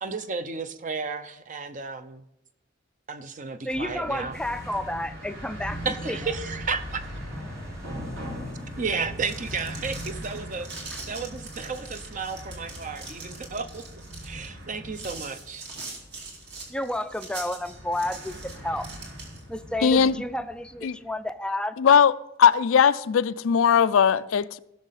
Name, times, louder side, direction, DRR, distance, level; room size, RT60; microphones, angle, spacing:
voice 1, 0.0-2.2 3.1-4.4 5.8-7.1 8.8-13.8 14.2-15.6, right 4 dB, 40° right, 0.7 m, -33 dB
voice 2, 3.6-5.8 6.1-6.2 8.4-8.5 16.7-18.9 19.5-21.8, left 1 dB, 5° left, 0.4 m, -31 dB
sound 1, 3.7-21.0, equal, 75° right, 3.5 m, -40 dB
sound 2, 4.3-9.8, equal, 15° right, 1.5 m, -52 dB
sound 3, 9.2-19.6, right 3 dB, 55° right, 2.7 m, -42 dB
voice 3, 19.8-20.2 20.8-21.0 21.8-22.1 22.4-24.6, left 7 dB, 90° left, 0.4 m, -19 dB
17.0 x 6.5 x 4.1 m
head